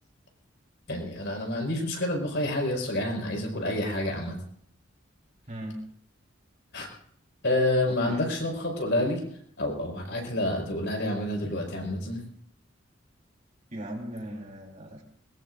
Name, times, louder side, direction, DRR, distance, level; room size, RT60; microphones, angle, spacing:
voice 1, 0.9-4.4 6.7-6.9 7.4-9.2 9.6-12.2, left 1 dB, 60° left, 1 dB, 5.6 m, -28 dB
voice 2, 5.5-5.8 7.9-8.3 13.7-15.0, equal, 40° right, -1 dB, 4.2 m, -38 dB
21.5 x 21.5 x 2.6 m, 0.63 s
head